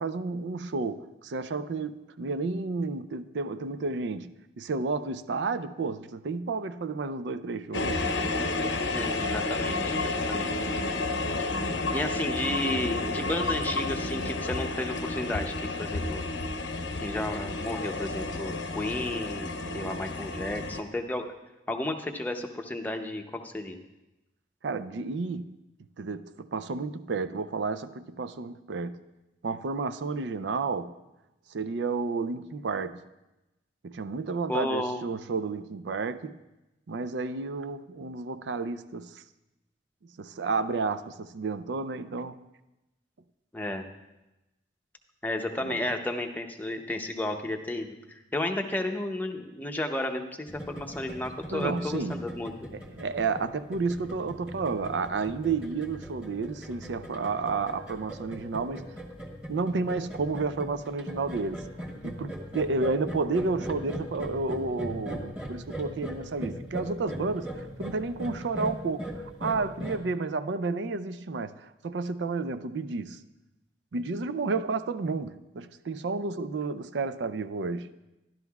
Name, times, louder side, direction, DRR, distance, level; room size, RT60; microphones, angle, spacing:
voice 1, 0.0-8.1 19.6-20.0 24.6-25.5 26.0-29.0 29.4-30.9 31.5-33.0 33.8-36.4 36.9-39.2 40.2-42.4 45.6-45.8 51.5-52.2 52.7-58.9 59.5-61.7 62.0-73.2 73.9-77.9, right 4 dB, 75° right, 0.4 m, -31 dB
sound 1, 7.7-20.8, left 2 dB, 90° left, 0.7 m, -31 dB
voice 2, 8.9-10.7 11.9-15.5 15.8-16.3 17.0-21.3 21.7-23.8 34.5-35.0 43.5-43.8 45.2-52.5, left 1 dB, 10° left, 0.6 m, -33 dB
sound 2, 50.5-70.0, equal, 5° right, 1.4 m, -40 dB
13.0 x 12.0 x 2.3 m
head